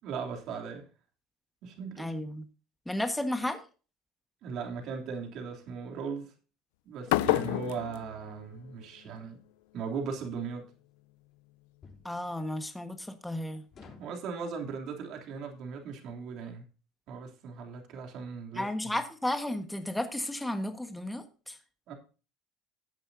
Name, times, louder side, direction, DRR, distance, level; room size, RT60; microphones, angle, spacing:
voice 1, 0.0-0.8 1.6-2.1 4.4-6.3 6.8-9.4 9.7-10.6 14.0-16.6 17.1-19.0 21.9-22.0, right 5 dB, 60° right, 3.1 m, -38 dB
voice 2, 2.0-2.5 2.9-3.6 12.0-13.7 18.5-21.6, left 1 dB, 5° left, 1.5 m, -33 dB
sound 1, 7.1-9.1, left 17 dB, 85° left, 0.4 m, -30 dB
sound 2, 9.7-9.9 11.8-12.1 13.7-14.2, left 4 dB, 45° left, 3.6 m, -51 dB
15.0 x 8.8 x 2.8 m
supercardioid pair, 95°, 0 cm